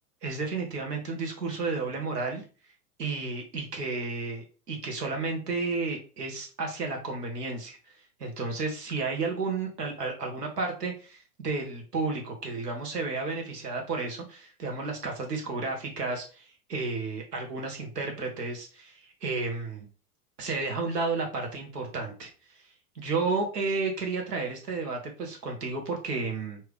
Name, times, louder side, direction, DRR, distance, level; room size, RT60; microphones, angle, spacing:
voice 1, 0.2-2.4 3.0-7.8 8.2-19.9 20.4-22.3 22.9-26.6, right 3 dB, 90° right, 2 dB, 1.5 m, -32 dB
4.4 x 2.6 x 3.4 m, 0.35 s
hypercardioid pair, 95°, 46 cm